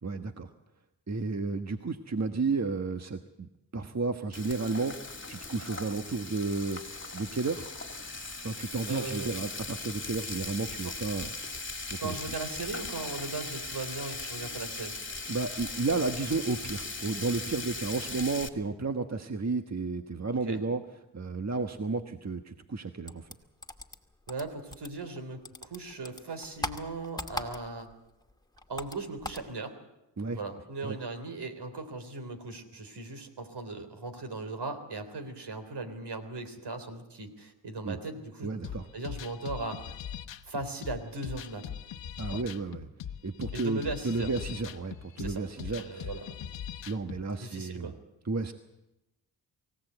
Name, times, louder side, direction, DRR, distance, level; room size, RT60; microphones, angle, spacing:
voice 1, 0.0-0.5 1.1-4.9 5.3-6.8 7.1-7.7 8.4-11.3 11.9-12.3 15.3-20.8 21.1-23.3 30.2-30.4 30.8-31.0 37.8-38.0 38.4-38.9 42.2-42.9 43.2-46.1 46.9-47.9 48.2-48.5, right 3 dB, 35° right, 7 dB, 1.4 m, -32 dB
Frying (food), 4.3-18.5, left 3 dB, 25° left, 2.5 m, -39 dB
voice 2, 8.9-9.4 12.0-15.0 20.4-20.6 24.3-27.9 28.7-29.8 30.3-38.6 38.9-40.0 40.5-41.7 42.3-42.4 43.5-44.3 45.2-46.4 47.4-48.0, right 3 dB, 65° right, 8 dB, 3.7 m, -38 dB
sound 1, 23.1-25.2 25.5-27.9 28.2-29.5, left 1 dB, 10° left, 2.2 m, -39 dB
sound 2, 38.6-47.2, left 9 dB, 80° left, 1.2 m, -41 dB
24.0 x 16.5 x 8.1 m, 0.96 s
supercardioid pair, 45°, 43 cm